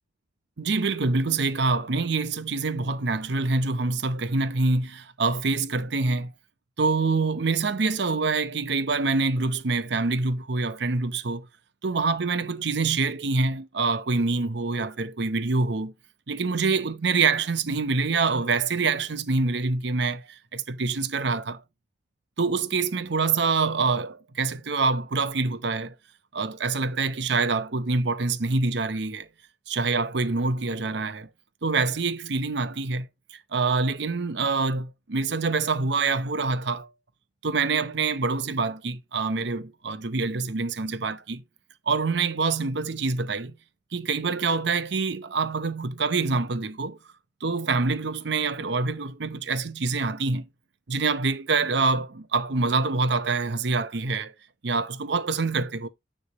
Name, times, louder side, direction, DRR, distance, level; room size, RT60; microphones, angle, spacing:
voice 1, 0.6-6.3 6.8-11.5 11.8-15.9 16.3-21.6 22.4-25.9 26.3-29.3 29.7-31.3 31.6-36.9 37.4-41.4 41.9-43.5 43.9-47.0 47.4-50.5 50.9-54.3 54.6-55.9, right 4 dB, 65° right, 0.7 m, -26 dB
9.6 x 3.4 x 4.2 m
head